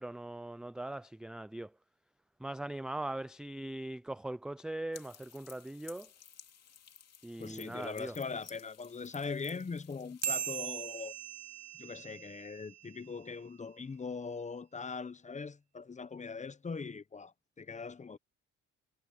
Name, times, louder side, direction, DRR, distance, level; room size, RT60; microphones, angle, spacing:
voice 1, 0.0-1.7 2.4-6.1 7.2-8.2, right 1 dB, ahead, 0.3 m, -40 dB
sound 1, 4.9-10.5, left 8 dB, 55° left, 2.7 m, -55 dB
voice 2, 7.4-11.2 11.8-18.2, left 5 dB, 25° left, 0.8 m, -41 dB
sound 2, 10.2-13.1, right 9 dB, 55° right, 1.2 m, -39 dB
cardioid pair, 90°, 30 cm